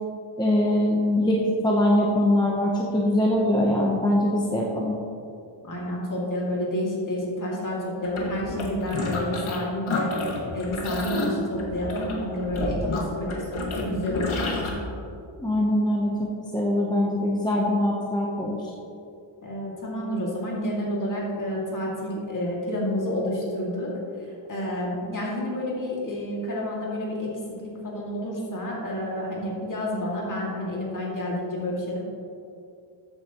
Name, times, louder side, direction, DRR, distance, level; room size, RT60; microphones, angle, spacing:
voice 1, 0.4-4.9 15.4-18.6, left 1 dB, 10° left, -3 dB, 0.8 m, -23 dB
voice 2, 5.6-10.1 10.5-14.8 19.4-23.9 24.5-32.0, equal, 40° left, -4 dB, 2.3 m, -29 dB
sound 1, 8.0-9.6 9.9-14.7, left 3 dB, 75° left, 1.8 m, -30 dB
13.5 x 8.8 x 3.0 m, 2.6 s
wide cardioid pair, 175°, 48 cm